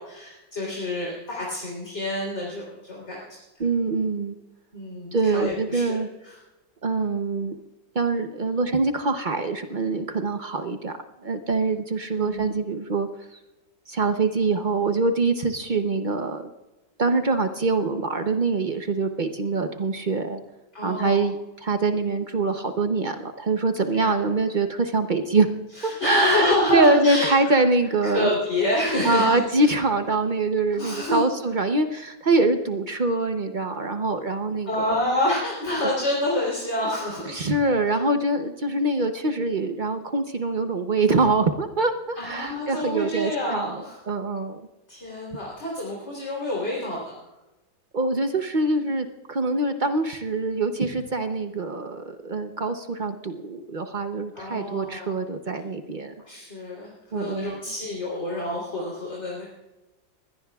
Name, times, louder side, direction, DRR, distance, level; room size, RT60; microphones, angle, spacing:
voice 1, 0.0-3.2 4.7-6.0 6.2-6.4 12.1-12.5 20.7-21.2 23.9-24.2 25.8-27.3 28.0-29.7 30.7-31.2 34.7-37.5 42.2-44.0 44.9-47.2 54.3-55.1 56.3-59.5, left 1 dB, 35° left, -4 dB, 3.7 m, -28 dB
voice 2, 3.6-4.4 5.1-6.1 6.8-7.6 7.9-10.9 11.2-13.4 13.9-16.5 17.0-20.4 20.8-25.5 25.8-28.3 29.0-34.9 35.8-35.9 37.3-44.6 47.9-56.1 57.1-57.6, right 3 dB, 65° right, 6 dB, 0.4 m, -24 dB
22.5 x 17.0 x 2.4 m, 1.1 s
omnidirectional pair, 2.1 m